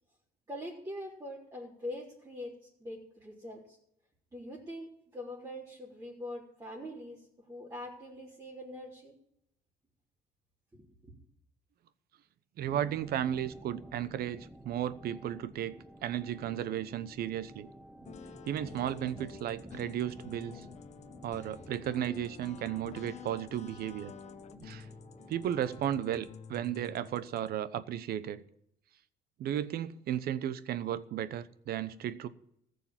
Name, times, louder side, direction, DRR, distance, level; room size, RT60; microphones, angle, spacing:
voice 1, 0.5-3.8 4.3-9.2 10.7-11.1, left 1 dB, 20° right, 3.7 m, -43 dB
sound 1, 12.6-25.9, right 1 dB, 5° right, 0.9 m, -52 dB
voice 2, 12.6-17.7 18.5-20.6 21.2-24.1 24.6-24.9 25.3-28.4 29.4-32.3, right 11 dB, 65° right, 0.9 m, -34 dB
sound 2, 18.0-27.5, left 8 dB, 40° left, 0.8 m, -50 dB
15.0 x 6.8 x 8.8 m
cardioid pair, 110°, 17 cm